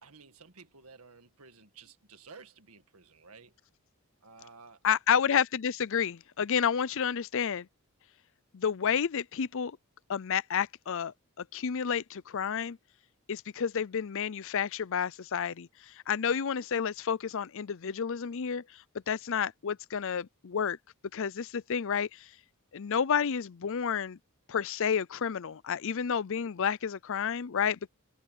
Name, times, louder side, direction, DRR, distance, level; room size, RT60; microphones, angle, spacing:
voice 1, 0.0-3.5 4.2-4.8, right 4 dB, 75° right, 1.9 m, -53 dB
voice 2, 4.8-7.7 8.5-9.8 10.1-12.8 13.3-18.6 19.1-20.8 21.1-22.3 22.7-24.2 24.5-27.9, left 7 dB, 60° left, 0.5 m, -30 dB
head